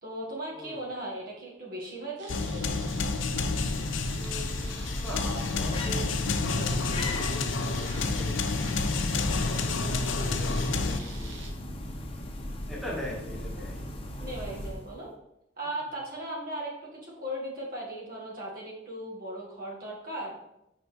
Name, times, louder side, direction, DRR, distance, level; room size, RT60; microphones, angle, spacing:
voice 1, 0.0-2.7 14.2-15.1 15.6-20.4, right 1 dB, 50° right, -4 dB, 1.9 m, -37 dB
voice 2, 0.5-0.9 4.2-8.8 9.1-11.5 12.7-14.0, equal, ahead, -6 dB, 1.8 m, -41 dB
sound 1, 2.2-11.5, right 3 dB, 70° right, 1.3 m, -47 dB
sound 2, 2.3-11.0, left 3 dB, 80° left, 0.6 m, -29 dB
sound 3, 3.2-15.0, left 1 dB, 30° left, 0.8 m, -37 dB
6.8 x 5.5 x 3.5 m, 0.83 s
head